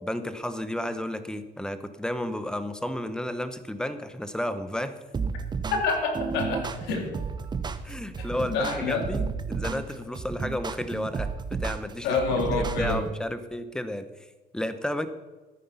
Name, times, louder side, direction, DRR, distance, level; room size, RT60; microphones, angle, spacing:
voice 1, 0.0-5.0 7.8-14.1 14.5-15.1, left 1 dB, 5° left, 11 dB, 1.0 m, -32 dB
sound 1, 5.1-13.1, right 5 dB, 25° right, 0.9 m, -32 dB
voice 2, 5.8-7.1 8.2-9.0 12.0-13.0, left 4 dB, 85° left, 3 dB, 2.7 m, -28 dB
13.0 x 9.8 x 5.6 m, 1.2 s
cardioid pair, 110°, 17 cm